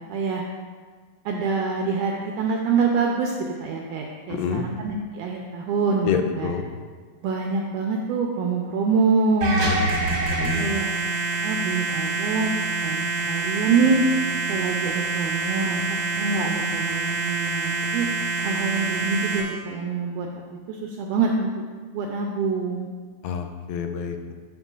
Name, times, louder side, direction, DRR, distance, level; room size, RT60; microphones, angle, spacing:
voice 1, 0.1-0.4 1.3-3.3 3.6-6.1 6.4-6.5 7.2-9.6 10.0-10.2 10.6-10.9 11.4-12.5 12.8-14.0 14.5-15.8 16.1-18.1 18.4-20.3 20.7-21.5 21.9-22.9, right 4 dB, 85° right, 1 dB, 1.8 m, -25 dB
voice 2, 4.3-4.7 6.0-6.7 9.6-10.1 10.4-10.7 23.2-24.3, left 6 dB, 85° left, 5 dB, 2.3 m, -28 dB
sound 1, 9.4-19.4, right 3 dB, 70° right, 1.5 m, -26 dB
12.5 x 5.5 x 2.4 m, 1.5 s
omnidirectional pair, 4.1 m